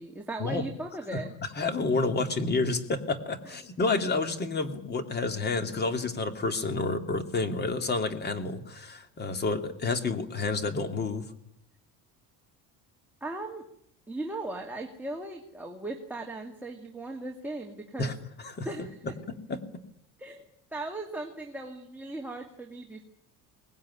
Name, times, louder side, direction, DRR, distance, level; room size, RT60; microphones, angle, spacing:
voice 1, 0.0-1.3 3.4-3.6 13.2-13.6 14.1-18.2 18.6-19.2 20.2-20.5 20.7-23.0, right 2 dB, 5° right, 1 dB, 2.1 m, -38 dB
voice 2, 1.6-11.2 18.0-18.1 18.4-18.7 19.5-19.6, left 3 dB, 25° left, 7 dB, 2.6 m, -29 dB
23.0 x 19.5 x 9.8 m, 0.73 s
cardioid pair, 155°, 37 cm